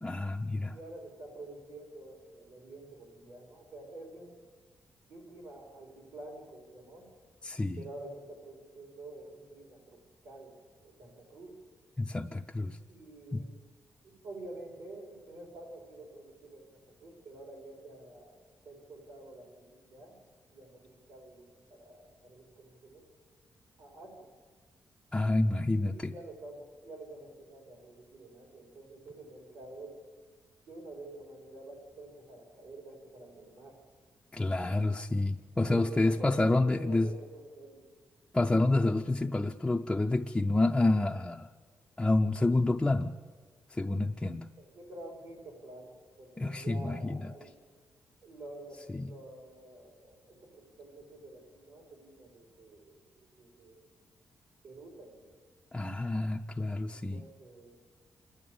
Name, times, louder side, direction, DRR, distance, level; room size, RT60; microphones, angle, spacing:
voice 1, 0.0-0.7 7.4-7.9 12.0-12.8 13.3-13.4 25.1-26.1 34.3-37.1 38.3-41.5 42.0-43.1 43.7-44.5 46.4-47.3 48.9-49.1 55.7-57.3, left 2 dB, 10° left, 1 dB, 0.5 m, -28 dB
voice 2, 0.7-4.4 5.1-7.1 7.8-11.6 12.9-13.5 14.0-20.2 20.5-23.1 23.8-24.3 25.7-30.0 30.7-33.8 35.7-37.9 44.6-47.5 48.2-53.9 54.6-55.3 56.9-57.8, right 2 dB, 75° right, 1 dB, 5.1 m, -48 dB
27.0 x 11.0 x 8.7 m, 1.5 s
cardioid pair, 130°, 6 cm